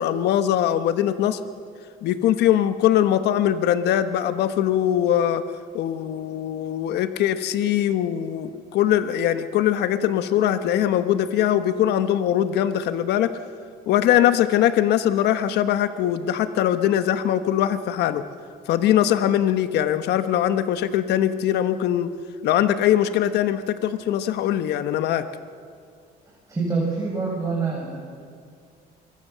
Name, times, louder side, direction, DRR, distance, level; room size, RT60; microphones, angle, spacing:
voice 1, 0.0-1.4 2.0-5.4 5.7-13.3 13.9-18.2 18.7-22.1 22.4-25.2, left 11 dB, 80° left, 10 dB, 1.2 m, -21 dB
voice 2, 26.5-28.0, right 4 dB, 20° right, -4 dB, 6.4 m, -25 dB
25.5 x 22.0 x 6.9 m, 2.3 s
cardioid pair, 110°, 17 cm